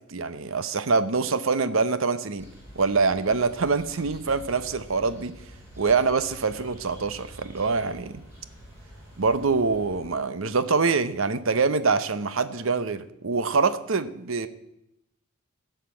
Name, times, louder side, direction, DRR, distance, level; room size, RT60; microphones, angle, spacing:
voice 1, 0.1-2.5 2.8-5.3 5.8-8.2 9.2-14.5, right 4 dB, 65° right, 13 dB, 0.8 m, -25 dB
sound 1, 2.4-10.1, equal, 10° right, 5.8 m, -47 dB
14.5 x 5.8 x 8.3 m, 0.85 s
head